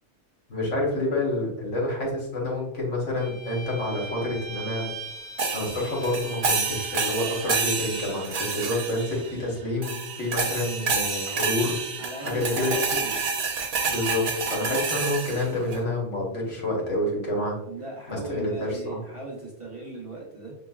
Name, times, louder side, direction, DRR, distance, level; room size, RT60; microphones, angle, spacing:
voice 1, 0.5-4.9 5.5-11.8 12.2-12.7 13.9-17.5 18.1-19.0, left 1 dB, 75° left, -3 dB, 1.6 m, -28 dB
Bowed string instrument, 3.2-7.8, right 3 dB, 5° left, 0.8 m, -40 dB
sound 1, 5.4-9.4 9.8-15.8, right 4 dB, 50° right, 0.5 m, -29 dB
voice 2, 12.0-13.2 17.6-20.6, right 2 dB, 30° right, -4 dB, 0.9 m, -37 dB
5.8 x 3.1 x 2.3 m, 0.84 s
omnidirectional pair, 1.2 m